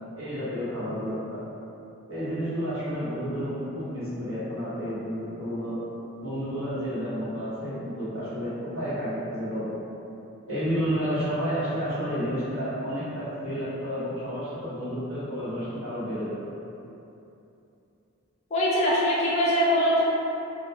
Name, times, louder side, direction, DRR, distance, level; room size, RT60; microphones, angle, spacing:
voice 1, 0.2-1.4 2.1-5.8 6.2-9.8 10.5-16.5, equal, 60° right, -11 dB, 1.0 m, -31 dB
voice 2, 18.5-20.0, equal, 30° left, -7 dB, 0.4 m, -22 dB
2.2 x 2.1 x 2.9 m, 2.8 s
head